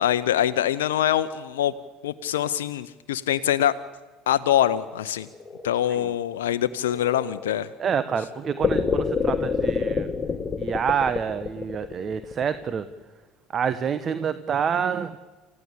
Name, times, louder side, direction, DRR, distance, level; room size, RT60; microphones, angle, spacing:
voice 1, 0.0-1.7 2.0-3.7 4.3-5.3 5.6-7.7, left 11 dB, 80° left, 10 dB, 0.7 m, -24 dB
sound 1, 4.7-10.5 10.8-10.9, left 2 dB, 15° left, 6.4 m, -44 dB
voice 2, 7.8-10.1 10.6-12.9 13.5-15.2, right 7 dB, 40° right, 12 dB, 1.2 m, -27 dB
sound 2, 8.6-12.8, left 5 dB, 30° left, 1.8 m, -26 dB
28.0 x 16.0 x 8.6 m, 1.3 s
hypercardioid pair, 70°, 0 cm